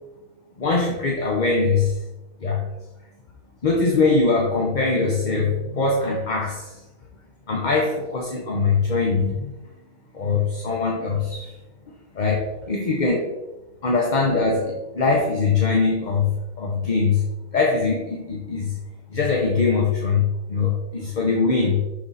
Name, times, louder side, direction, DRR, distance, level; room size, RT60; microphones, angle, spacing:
voice 1, 0.6-2.0 2.4-2.6 3.6-6.8 7.5-9.5 10.1-11.6 12.1-13.3 13.8-17.2 17.5-18.8 19.1-21.8, left 4 dB, 40° left, -1 dB, 0.9 m, -22 dB
6.0 x 5.9 x 4.1 m, 1.0 s
omnidirectional pair, 1.5 m